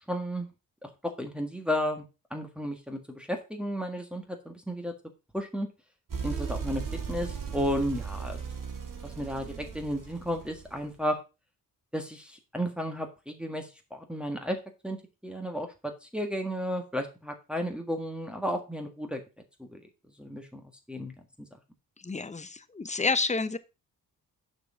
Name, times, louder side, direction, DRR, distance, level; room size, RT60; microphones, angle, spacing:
voice 1, 0.1-0.5 0.8-2.0 2.3-4.9 5.3-5.7 6.2-6.8 7.1-8.4 9.0-11.2 11.9-15.0 15.2-19.2 19.6-19.8 20.2-20.6 20.9-21.1 21.4-21.5, equal, ahead, 1.7 m, -33 dB
sound 1, 6.1-10.9, right 6 dB, 55° right, 2.3 m, -37 dB
voice 2, 22.0-23.6, left 4 dB, 20° left, 0.8 m, -29 dB
6.5 x 4.7 x 5.2 m
supercardioid pair, 50°, 39 cm